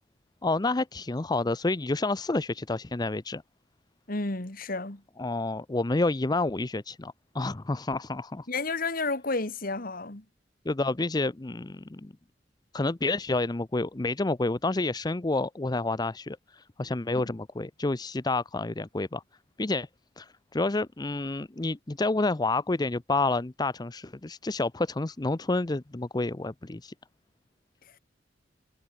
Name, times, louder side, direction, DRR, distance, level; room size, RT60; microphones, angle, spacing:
voice 1, 0.4-3.4 5.2-8.5 10.7-12.1 12.7-19.2 19.6-19.9 20.2-26.9, left 2 dB, 20° left, 0.6 m, -29 dB
voice 2, 4.1-5.0 8.5-10.2 17.2-17.3, left 3 dB, 50° left, 2.3 m, -31 dB
head